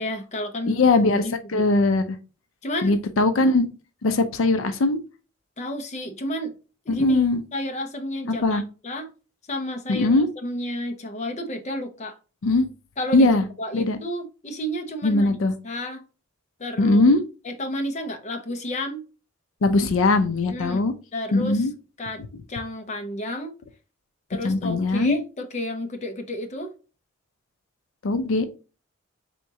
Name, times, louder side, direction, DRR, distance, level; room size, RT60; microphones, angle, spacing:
voice 1, 0.0-0.8 1.2-1.6 2.6-2.9 5.6-6.5 6.9-7.3 7.5-9.1 9.5-12.1 13.0-15.4 15.6-16.0 16.6-17.1 17.4-19.0 20.4-20.8 21.1-21.7 22.0-22.2 22.5-23.6 24.3-26.7, left 1 dB, 35° left, 0.6 m, -31 dB
voice 2, 0.7-2.2 2.8-3.7 4.0-5.0 6.9-7.4 8.3-8.6 9.9-10.3 12.4-12.7 13.1-13.4 13.7-14.0 15.0-15.5 16.8-17.2 19.6-20.9 21.3-21.7 24.4-25.2 28.0-28.5, left 2 dB, 80° left, 0.5 m, -20 dB
4.4 x 3.5 x 2.7 m
head